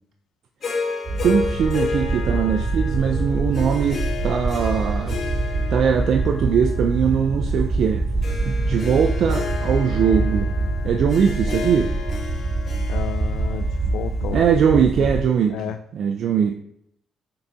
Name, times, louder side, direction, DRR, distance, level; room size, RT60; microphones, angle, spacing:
Harp, 0.6-15.0, left 4 dB, 50° left, 1.3 m, -32 dB
sound 1, 1.0-15.2, right 2 dB, 45° right, 2.3 m, -25 dB
voice 1, 1.2-5.2 5.7-8.0 8.4-10.5 10.8-11.9 14.3-15.6 15.9-16.5, right 7 dB, 65° right, 4 dB, 0.5 m, -21 dB
voice 2, 12.9-15.1 15.5-15.8, left 10 dB, 85° left, 8 dB, 0.3 m, -32 dB
6.8 x 4.0 x 3.5 m, 0.72 s
cardioid pair, 90°, 0 cm